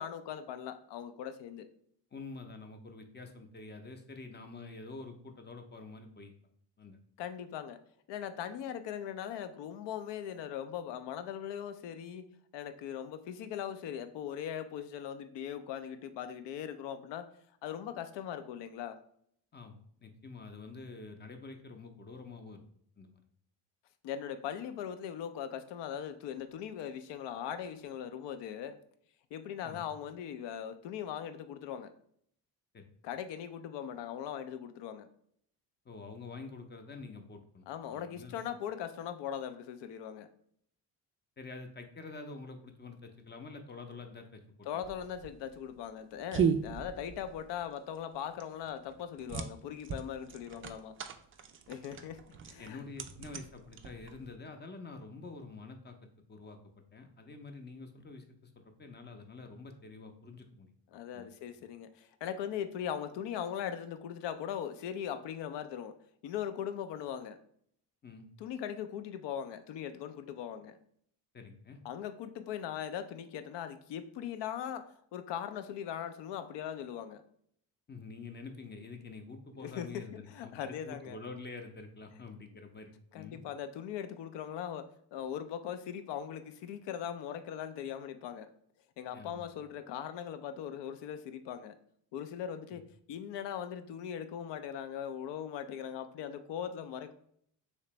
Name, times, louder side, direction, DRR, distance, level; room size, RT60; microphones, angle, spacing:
voice 1, 0.0-1.7 7.2-7.8 8.1-12.3 12.5-17.3 17.6-19.0 24.0-28.8 29.3-31.9 33.0-35.1 37.7-40.3 44.7-51.0 51.7-52.8 60.9-66.0 66.2-67.4 68.4-70.8 71.8-77.2 79.6-81.2 83.1-88.5 89.0-91.8 92.1-97.1, left 9 dB, 60° left, 10 dB, 0.6 m, -40 dB
voice 2, 2.1-6.3 6.8-7.0 19.5-22.6 23.0-23.2 29.6-29.9 32.7-32.9 35.8-37.6 37.9-38.4 41.4-44.4 44.7-44.9 52.6-56.6 56.9-60.7 61.1-61.3 68.0-68.2 71.3-71.8 77.9-83.4 89.1-89.5 92.7-92.8, left 3 dB, 20° left, 5 dB, 0.6 m, -47 dB
sound 1, 44.8-54.3, right 6 dB, 30° right, 0.3 m, -37 dB
3.2 x 2.9 x 3.1 m, 0.66 s
hypercardioid pair, 55°, 48 cm